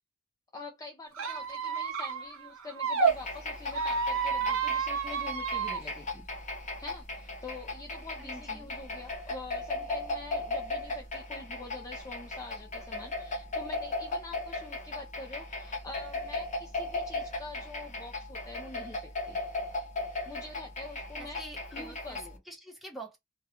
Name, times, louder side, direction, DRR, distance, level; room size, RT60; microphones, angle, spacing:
voice 1, 0.5-6.3 6.8-19.4 20.3-21.4 21.7-22.4, left 3 dB, 15° left, 0.4 m, -45 dB
Squeak, 1.1-3.1 3.7-5.8, right 5 dB, 80° right, 0.8 m, -30 dB
sound 1, 3.1-22.4, left 2 dB, 35° left, 0.7 m, -37 dB
voice 2, 8.2-8.7 21.2-23.2, right 1 dB, ahead, 0.8 m, -46 dB
2.4 x 2.2 x 2.7 m
head